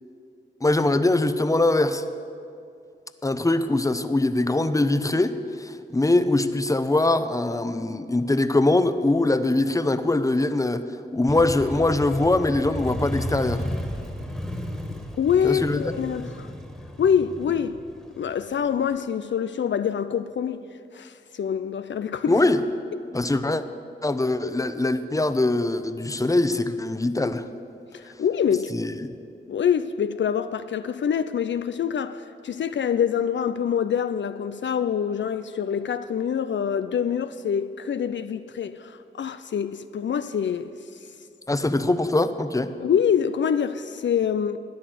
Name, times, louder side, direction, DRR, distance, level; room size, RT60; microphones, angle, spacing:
voice 1, 0.6-2.0 3.2-10.8 11.1-13.6 15.4-15.9 22.3-22.6 23.1-23.6 24.0-27.5 28.7-29.2 41.5-42.7, left 2 dB, 15° left, 0.8 m, -22 dB
Motorcycle, 11.3-18.9, equal, ahead, 2.0 m, -33 dB
voice 2, 15.2-16.5 17.0-17.8 18.2-20.6 20.9-22.4 27.9-28.7 29.5-40.7 42.8-44.6, left 8 dB, 65° left, 0.5 m, -25 dB
13.0 x 9.7 x 7.7 m
cardioid pair, 50°, 20 cm